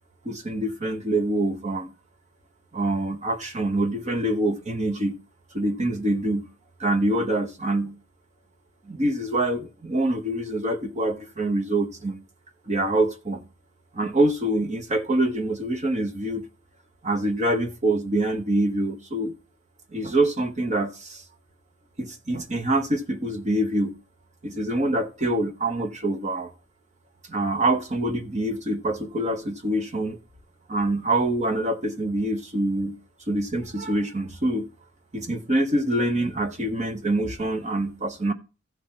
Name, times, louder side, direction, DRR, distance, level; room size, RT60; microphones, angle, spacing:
voice 1, 0.2-1.9 2.7-5.2 5.5-6.5 6.8-8.0 8.9-12.2 12.7-13.4 13.9-16.4 17.0-19.3 19.9-21.2 22.0-24.0 24.4-26.5 27.3-30.2 30.7-33.0 33.3-34.7 35.1-38.3, right 1 dB, 35° right, 1.2 m, -25 dB
14.5 x 5.7 x 4.5 m
head